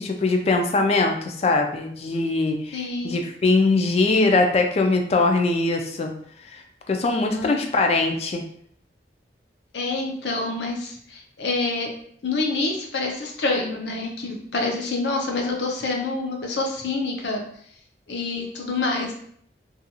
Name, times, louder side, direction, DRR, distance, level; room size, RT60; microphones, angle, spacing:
voice 1, 0.0-6.1 6.5-6.6 6.9-8.4, left 3 dB, 35° left, 4 dB, 0.3 m, -21 dB
voice 2, 2.7-3.1 7.1-7.6 9.7-11.9 12.2-17.4 18.1-19.2, left 3 dB, 75° left, 1 dB, 0.6 m, -27 dB
2.4 x 2.3 x 2.8 m, 0.64 s
head